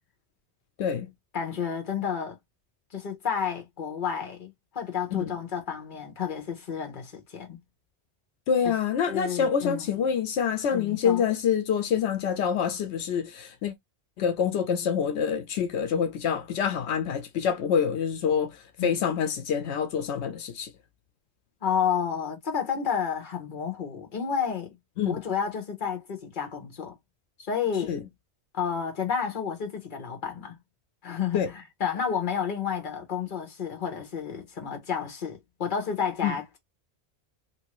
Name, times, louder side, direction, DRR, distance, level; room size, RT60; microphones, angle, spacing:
voice 1, 0.8-1.1 5.1-5.3 8.5-13.7 14.2-20.7 25.0-25.2 27.9-28.0 31.3-31.5 36.2-36.3, left 7 dB, 85° left, 0.9 m, -26 dB
voice 2, 1.3-2.4 2.9-7.6 8.6-8.7 9.1-10.0 10.7-11.2 18.8-19.0 21.6-24.7 25.0-26.9 27.4-28.0 28.5-30.6 31.0-36.6, left 7 dB, 50° left, 1.1 m, -31 dB
2.9 x 2.7 x 2.9 m
omnidirectional pair, 1.1 m